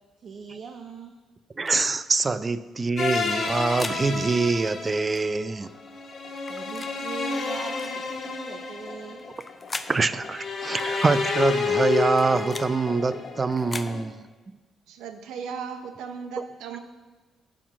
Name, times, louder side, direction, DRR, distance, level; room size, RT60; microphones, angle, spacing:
voice 1, 0.2-1.1 5.5-5.7 6.3-9.3 10.1-10.2, right 6 dB, 55° right, 4 dB, 0.7 m, -41 dB
sound 1, 1.6-1.9 3.2-4.0 5.1-5.3 6.4-6.9 7.8-8.0 9.2-9.9 10.7-10.9 11.9-12.7 13.5-13.9, left 3 dB, 25° left, 0.5 m, -39 dB
voice 2, 1.6-5.7 9.9-14.2, right 4 dB, 30° right, 15 dB, 0.4 m, -25 dB
sound 2, 3.0-14.0, left 4 dB, 55° left, 1.4 m, -30 dB
voice 3, 14.9-16.8, right 6 dB, 90° right, 8 dB, 0.8 m, -36 dB
11.5 x 4.5 x 5.9 m, 1.3 s
cardioid pair, 90°, 0 cm